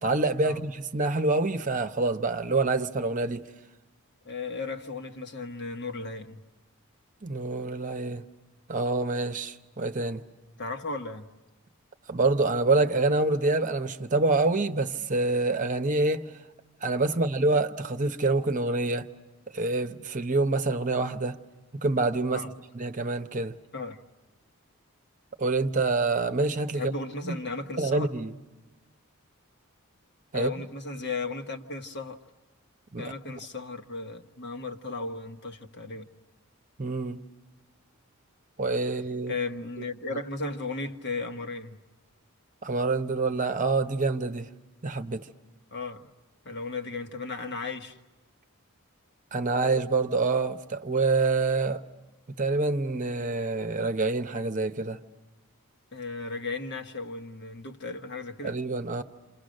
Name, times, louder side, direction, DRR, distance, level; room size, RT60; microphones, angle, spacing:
voice 1, 0.0-3.5 7.2-8.2 8.7-10.2 12.1-16.2 16.8-19.1 19.5-21.4 21.8-22.5 22.7-23.6 25.4-26.9 27.2-27.3 27.8-28.3 30.3-30.5 32.9-33.1 36.8-37.2 38.6-39.3 42.6-44.5 44.8-45.3 49.3-51.8 52.4-55.0 58.4-59.0, right 3 dB, 35° right, 0.9 m, -26 dB
voice 2, 4.2-6.4 10.6-11.3 17.1-17.3 22.3-22.5 23.7-24.0 26.7-28.1 30.3-32.2 33.0-36.1 39.3-41.8 45.7-46.1 46.4-48.0 55.9-58.6, left 3 dB, 50° left, 1.4 m, -35 dB
28.0 x 27.5 x 6.5 m
head